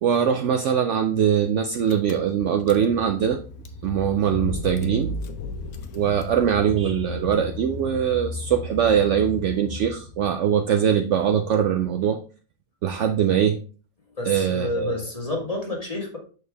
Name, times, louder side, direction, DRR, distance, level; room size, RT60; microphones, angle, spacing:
voice 1, 0.0-3.4 3.8-5.1 5.9-12.2 12.8-13.6 14.2-15.0, right 8 dB, 65° right, 5 dB, 0.8 m, -22 dB
Car / Engine, 1.6-1.7 1.9-10.2, left 2 dB, 75° left, 1.2 m, -34 dB
voice 2, 14.1-16.2, left 2 dB, 25° left, 0 dB, 1.5 m, -29 dB
6.6 x 4.6 x 3.3 m, 0.38 s
omnidirectional pair, 1.5 m